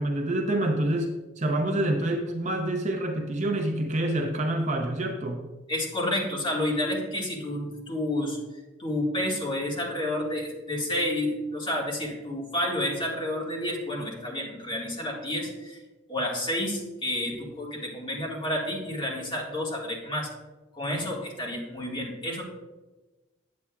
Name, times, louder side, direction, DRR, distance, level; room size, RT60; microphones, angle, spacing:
voice 1, 0.0-5.4, right 1 dB, 40° right, 3 dB, 0.7 m, -27 dB
voice 2, 5.7-8.4 8.8-15.8 16.1-20.3 20.8-22.4, left 1 dB, 25° left, -4 dB, 1.8 m, -30 dB
8.5 x 8.5 x 2.3 m, 1.2 s
head